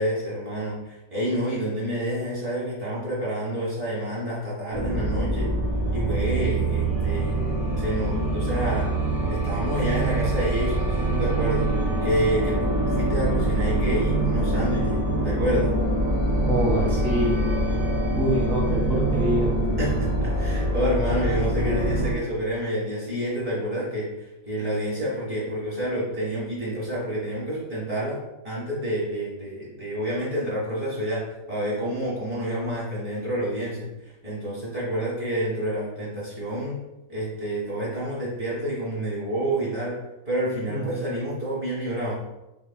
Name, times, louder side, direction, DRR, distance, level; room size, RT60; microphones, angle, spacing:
voice 1, 0.0-5.5 5.9-8.9 9.3-11.7 12.0-15.7 19.8-36.8 37.1-40.0 40.2-42.2, equal, 25° right, -8 dB, 1.6 m, -28 dB
sound 1, 4.7-22.1, right 1 dB, 60° right, 1.7 m, -24 dB
voice 2, 16.4-17.4 18.2-19.5 40.7-41.1, right 1 dB, ahead, -7 dB, 1.3 m, -26 dB
5.5 x 4.3 x 2.2 m, 0.94 s
omnidirectional pair, 1.6 m